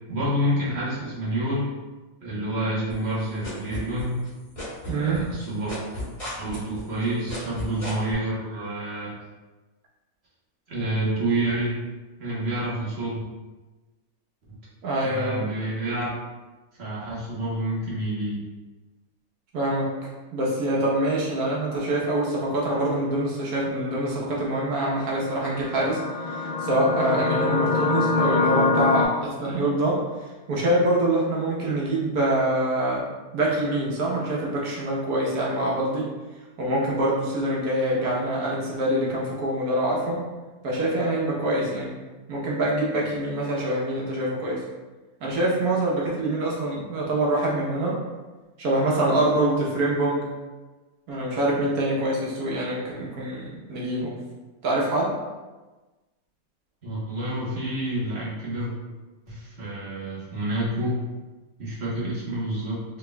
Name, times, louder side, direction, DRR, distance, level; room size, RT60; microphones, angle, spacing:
voice 1, 0.1-1.7 2.2-4.2 4.9-5.7 6.4-9.1 10.7-11.8 12.2-13.2 14.5-14.6 15.0-16.1 16.8-18.4 56.8-58.7 59.3-61.1 61.6-62.8, right 1 dB, 50° right, -7 dB, 1.4 m, -28 dB
sound 1, 2.9-4.3 4.6-8.1, left 1 dB, 25° left, 1.4 m, -35 dB
voice 2, 4.9-5.2 14.8-15.5 19.5-19.9 20.3-33.0 33.3-36.1 36.6-40.2 40.6-41.9 42.3-44.6 45.2-47.9 48.6-50.3 51.1-54.1 54.6-55.1, right 1 dB, 90° right, -4 dB, 1.5 m, -25 dB
sound 2, 25.0-29.1, left 4 dB, 55° left, 0.6 m, -25 dB
4.5 x 3.5 x 2.3 m, 1.2 s
omnidirectional pair, 1.5 m